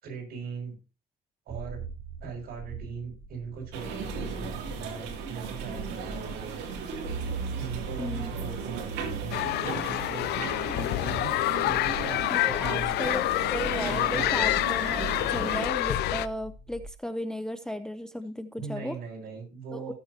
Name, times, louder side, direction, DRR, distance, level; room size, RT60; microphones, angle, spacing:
voice 1, 0.0-0.7 1.5-1.8 2.2-6.6 7.5-10.6 11.0-13.2 13.8-14.6 18.6-19.9, right 5 dB, 65° right, 1 dB, 6.3 m, -40 dB
sound 1, 1.5-16.9, right 3 dB, 35° right, 7.5 m, -40 dB
sound 2, 3.7-15.7, right 6 dB, 90° right, 2.6 m, -38 dB
voice 2, 8.0-8.3 12.3-19.0 19.7-19.9, equal, 5° left, 10 dB, 0.7 m, -35 dB
sound 3, 9.3-16.3, left 17 dB, 75° left, 0.5 m, -27 dB
17.0 x 7.6 x 2.8 m, 0.30 s
cardioid pair, 110°, 17 cm